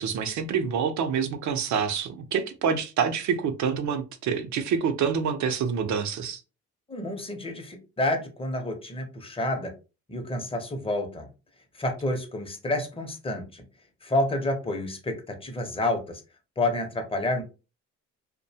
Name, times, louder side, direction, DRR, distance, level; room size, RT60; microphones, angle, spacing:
voice 1, 0.0-6.4, right 6 dB, 70° right, 0.6 m, -27 dB
voice 2, 6.9-9.7 10.1-11.3 11.7-13.6 14.0-16.2 16.6-17.4, left 1 dB, 20° left, 0.7 m, -29 dB
2.6 x 2.1 x 2.7 m
cardioid pair, 90°, 30 cm